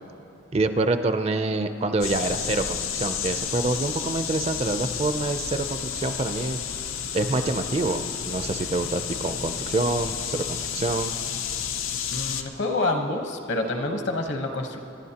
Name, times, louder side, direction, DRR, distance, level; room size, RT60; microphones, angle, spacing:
voice 1, 0.5-6.6 7.1-11.1, right 2 dB, 30° right, 9 dB, 0.4 m, -26 dB
sound 1, 2.0-12.4, left 8 dB, 80° left, 0.6 m, -31 dB
voice 2, 12.1-14.8, left 2 dB, 60° left, 4 dB, 1.0 m, -27 dB
27.0 x 11.0 x 2.9 m, 2.9 s
head